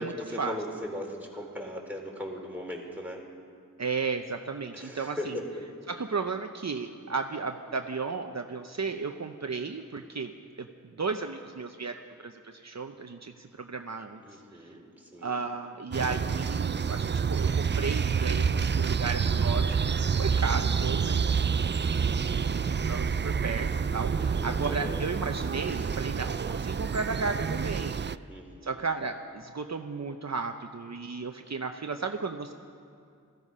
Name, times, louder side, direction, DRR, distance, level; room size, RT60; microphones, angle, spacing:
voice 1, 0.0-3.2 4.7-5.5 14.2-15.3 24.2-25.1 28.3-28.8, left 1 dB, 5° right, -1 dB, 3.7 m, -38 dB
voice 2, 3.8-5.3 5.9-10.3 10.6-10.7 11.0-14.7 15.2-21.4 22.5-28.2 28.6-32.5, right 4 dB, 55° right, 5 dB, 0.8 m, -34 dB
sound 1, 15.9-28.2, right 6 dB, 35° right, 0.4 m, -28 dB
18.0 x 14.5 x 5.5 m, 2.4 s
cardioid pair, 45°, 33 cm